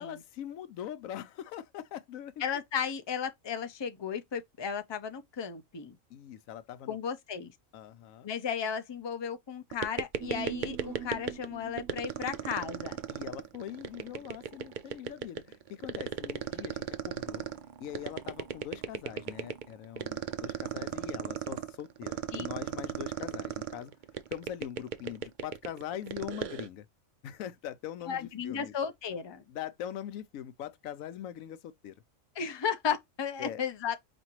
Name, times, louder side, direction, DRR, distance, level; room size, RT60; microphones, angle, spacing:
voice 1, 0.0-2.4 6.1-7.0 7.7-8.3 13.1-17.5 17.8-23.9 24.3-26.9 27.2-28.7 29.5-32.0 33.4-33.6, left 10 dB, 80° left, 1.0 m, -42 dB
voice 2, 2.4-6.0 6.9-7.5 8.2-13.0 22.3-22.5 28.1-29.4 32.4-34.0, left 7 dB, 40° left, 0.4 m, -34 dB
sound 1, 9.7-11.5 11.8-26.7, right 9 dB, 65° right, 0.4 m, -35 dB
Human voice, 10.2-14.8 15.1-15.2, right 9 dB, 90° right, 1.1 m, -45 dB
5.0 x 2.6 x 2.9 m
omnidirectional pair, 1.4 m